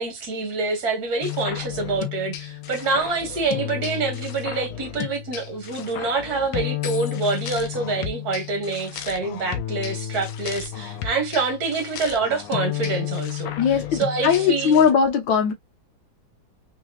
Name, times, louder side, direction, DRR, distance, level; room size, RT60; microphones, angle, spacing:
voice 1, 0.0-13.5 13.9-14.8, right 4 dB, 50° right, 1.7 m, -26 dB
sound 1, 1.2-14.9, left 11 dB, 85° left, 1.5 m, -32 dB
voice 2, 13.6-15.5, left 7 dB, 70° left, 1.6 m, -19 dB
3.9 x 3.0 x 2.3 m
omnidirectional pair, 2.2 m